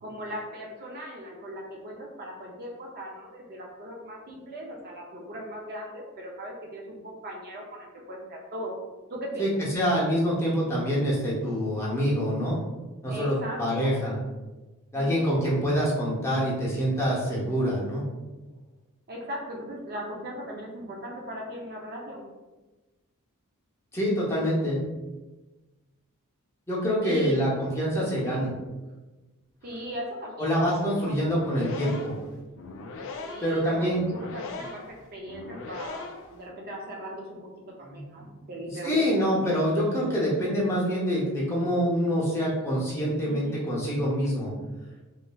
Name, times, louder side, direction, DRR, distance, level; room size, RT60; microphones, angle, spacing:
voice 1, 0.0-8.8 9.1-9.6 13.1-14.0 14.9-15.3 19.1-22.2 27.0-27.7 28.2-28.4 29.6-31.1 31.4-31.6 33.1-39.0 43.2-43.6, equal, 45° right, -1 dB, 0.4 m, -39 dB
voice 2, 9.4-12.6 13.0-14.2 14.9-18.0 23.9-24.8 26.7-28.5 30.4-32.1 33.4-34.0 37.8-38.0 38.8-44.5, equal, 10° left, -6 dB, 0.6 m, -26 dB
sound 1, 31.2-36.4, left 3 dB, 60° left, 0.3 m, -40 dB
3.1 x 2.4 x 2.2 m, 1.2 s
head